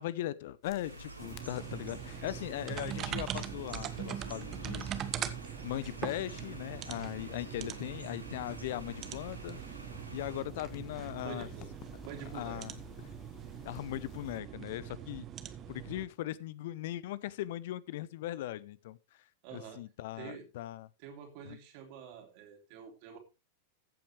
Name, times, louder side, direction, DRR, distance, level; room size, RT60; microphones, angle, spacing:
voice 1, 0.0-4.8 5.6-9.6 10.1-11.5 12.3-13.1 13.6-15.3 15.7-19.2 19.5-20.9 21.5-21.6, left 14 dB, 55° left, 0.6 m, -39 dB
sound 1, 0.6-14.4, left 8 dB, 35° left, 1.2 m, -55 dB
sound 2, 0.8-10.4, right 3 dB, 85° right, 2.0 m, -48 dB
sound 3, 1.2-16.0, right 9 dB, 30° right, 1.1 m, -42 dB
voice 2, 11.2-11.7 12.0-12.6 19.4-19.8 20.1-20.5 21.0-23.2, right 7 dB, 45° right, 3.3 m, -47 dB
15.0 x 8.5 x 3.2 m
figure-of-eight pair, 90°, 0 cm